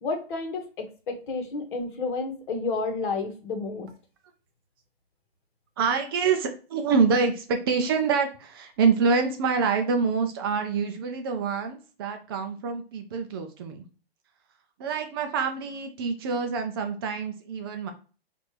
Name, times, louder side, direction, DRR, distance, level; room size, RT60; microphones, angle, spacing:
voice 1, 0.0-3.9, left 3 dB, 55° left, 5 dB, 1.1 m, -31 dB
voice 2, 5.8-13.8 14.8-17.9, right 5 dB, 25° right, 6 dB, 0.3 m, -26 dB
4.3 x 2.5 x 3.1 m, 0.37 s
hypercardioid pair, 125°, 31 cm